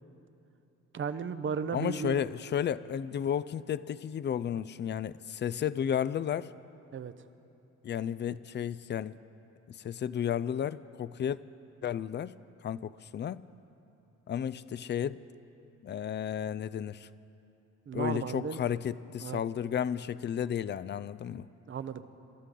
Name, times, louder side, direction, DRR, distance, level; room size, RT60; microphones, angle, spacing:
voice 1, 0.9-2.2 6.9-7.1 17.9-18.6 19.2-19.4 21.7-22.0, right 6 dB, 40° right, 12 dB, 0.7 m, -34 dB
voice 2, 1.7-6.5 7.8-9.1 9.8-11.4 11.8-12.4 12.6-13.4 14.3-15.2 15.8-17.1 17.9-21.5, left 9 dB, 35° left, 17 dB, 0.4 m, -33 dB
26.0 x 13.0 x 3.8 m, 2.9 s
cardioid pair, 90°, 30 cm